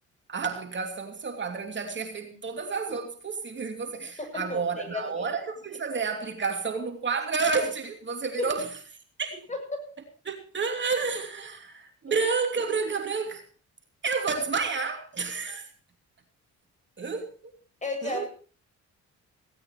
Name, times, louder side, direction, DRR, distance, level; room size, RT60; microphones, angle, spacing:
voice 1, 0.3-8.7 9.2-9.4 10.2-13.4 14.0-15.7 17.0-17.3 18.0-18.3, right 4 dB, 40° right, 2.7 m, -30 dB
voice 2, 4.2-5.3 8.4-8.5 9.5-9.9 12.0-12.1 17.8-18.3, left 2 dB, 25° left, 7.6 m, -33 dB
18.0 x 17.0 x 3.2 m
cardioid pair, 90°, 30 cm